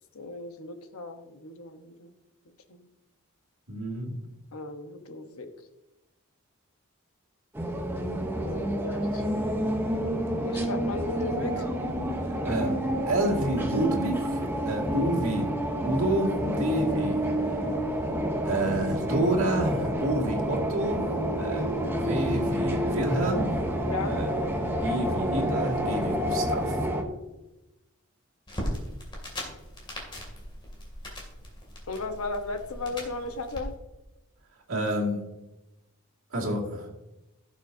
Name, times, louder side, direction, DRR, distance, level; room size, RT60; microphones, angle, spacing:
voice 1, 0.1-2.1 2.7-2.8 4.5-5.5 8.4-9.2 10.4-11.7 23.9-24.2 31.9-33.7, left 3 dB, 80° left, 7 dB, 1.1 m, -36 dB
voice 2, 3.7-4.1 12.3-12.8 13.1-15.5 15.8-17.2 18.4-21.1 21.3-23.5 24.0-24.3 24.8-26.8 34.7-35.2 36.3-36.9, right 1 dB, 65° right, -2 dB, 2.3 m, -29 dB
sound 1, 7.6-27.0, equal, 10° right, 0.9 m, -29 dB
sound 2, 28.5-33.6, equal, 20° left, 2.6 m, -38 dB
16.5 x 6.8 x 2.7 m, 0.97 s
head